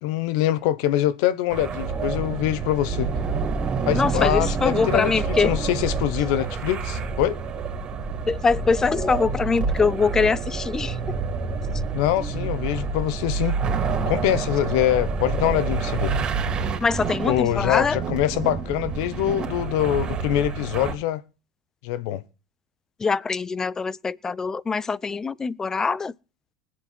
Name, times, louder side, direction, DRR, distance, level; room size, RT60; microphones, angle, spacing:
voice 1, 0.0-3.1 3.9-7.4 11.9-13.6 14.0-16.2 17.2-21.2 21.8-22.2, left 13 dB, 70° left, 1.0 m, -24 dB
sound 1, 1.5-20.9, right 5 dB, 40° right, 3.2 m, -28 dB
voice 2, 3.9-5.5 8.3-11.2 16.8-18.0 23.0-26.1, left 5 dB, 20° left, 0.5 m, -23 dB
20.5 x 7.9 x 4.4 m
hypercardioid pair, 90°, 3 cm